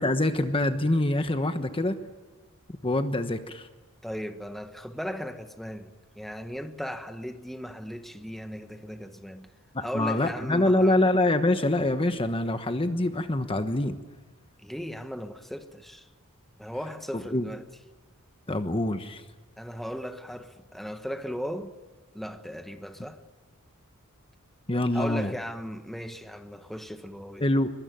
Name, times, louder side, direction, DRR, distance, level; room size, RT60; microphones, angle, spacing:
voice 1, 0.0-2.0 2.7-3.7 9.7-14.0 17.1-17.5 18.5-19.2 24.7-25.3 27.4-27.7, left 1 dB, 25° left, 1.2 m, -25 dB
voice 2, 4.0-9.5 9.8-11.0 14.6-16.1 16.6-17.6 19.6-21.7 22.1-23.2 24.9-27.5, equal, ahead, 1.3 m, -37 dB
23.5 x 23.0 x 9.3 m
head